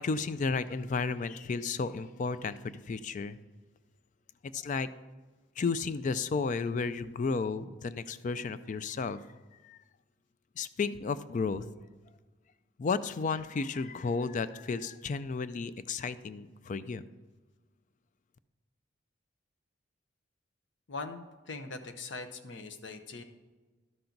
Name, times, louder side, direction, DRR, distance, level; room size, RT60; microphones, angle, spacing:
voice 1, 0.0-3.4 4.5-4.9 5.6-9.2 9.6-9.8 10.6-11.6 12.8-17.0, left 4 dB, 40° left, 14 dB, 0.3 m, -33 dB
voice 2, 20.9-23.2, left 3 dB, 65° left, 8 dB, 0.7 m, -41 dB
12.0 x 5.8 x 3.9 m, 1.3 s
head